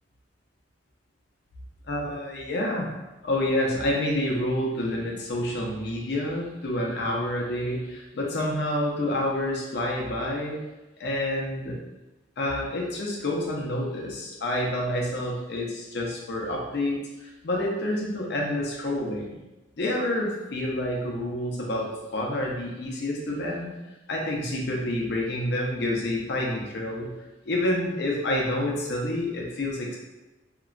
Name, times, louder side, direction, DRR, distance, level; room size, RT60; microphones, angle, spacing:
voice 1, 1.9-2.9 3.2-10.6 11.0-11.8 12.4-19.4 19.8-23.7 24.1-27.1 27.5-30.0, left 1 dB, 60° left, -1 dB, 0.5 m, -28 dB
2.9 x 2.1 x 2.4 m, 1.1 s
head